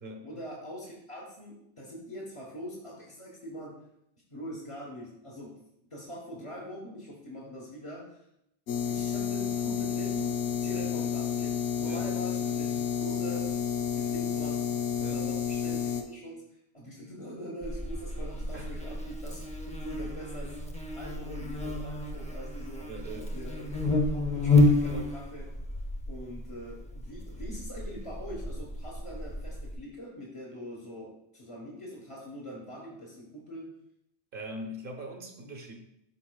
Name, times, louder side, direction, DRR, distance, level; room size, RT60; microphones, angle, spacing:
voice 1, 0.2-3.7 4.3-5.5 5.9-8.3 8.9-20.6 20.9-23.8 24.1-25.5 26.1-33.7, equal, 30° left, -5 dB, 1.2 m, -43 dB
sound 1, 8.7-16.0, left 8 dB, 90° left, 1.0 m, -30 dB
Buzz, 17.6-29.7, left 2 dB, 10° left, 0.5 m, -30 dB
voice 2, 22.9-23.3 34.3-35.7, right 1 dB, 55° right, 2 dB, 1.1 m, -41 dB
12.0 x 4.2 x 2.3 m, 0.80 s
omnidirectional pair, 1.1 m